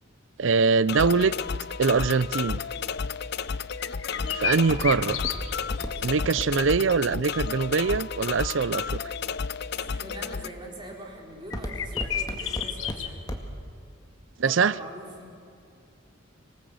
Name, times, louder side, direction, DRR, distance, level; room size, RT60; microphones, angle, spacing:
voice 1, 0.4-1.3 1.8-2.6 4.3-5.2 6.0-9.0 14.4-14.7, right 5 dB, 70° right, 19 dB, 0.6 m, -23 dB
sound 1, 0.9-10.5, left 6 dB, 55° left, 0.6 m, -32 dB
Walk footsteps, 3.4-8.5 9.1-9.6 10.1-10.5 10.8-13.7 14.0-14.1, equal, 20° left, 1.9 m, -36 dB
sound 2, 3.8-5.9 6.1-6.2 11.5-13.1, left 9 dB, 80° left, 1.3 m, -31 dB
voice 2, 4.0-4.5 9.6-13.2 14.4-15.3, right 1 dB, 25° right, 0 dB, 4.0 m, -43 dB
26.0 x 19.0 x 7.9 m, 2.5 s
head